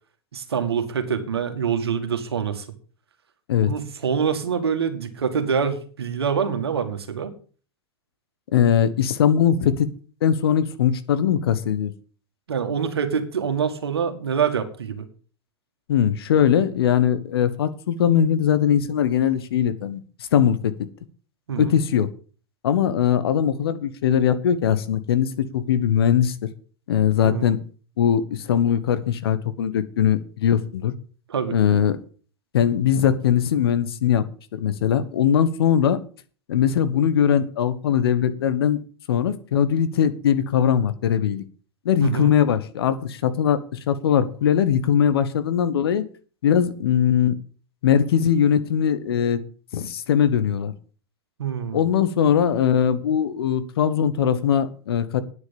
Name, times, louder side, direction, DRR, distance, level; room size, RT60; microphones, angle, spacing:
voice 1, 0.3-2.7 3.7-7.3 12.5-15.1 21.5-21.8 27.2-27.5 31.3-31.6 42.0-42.3 51.4-51.8, right 7 dB, 85° right, 7 dB, 2.1 m, -25 dB
voice 2, 8.5-9.9 10.2-11.9 15.9-20.0 20.3-20.7 21.6-22.1 22.6-26.4 26.9-27.6 28.0-30.9 31.5-32.0 32.5-34.3 34.5-36.0 36.5-38.8 39.1-41.4 41.8-46.0 46.4-47.4 47.8-49.4 49.7-50.7 51.7-55.2, left 9 dB, 75° left, 13 dB, 1.3 m, -20 dB
9.7 x 8.6 x 7.1 m, 0.40 s
hypercardioid pair, 100°, 13 cm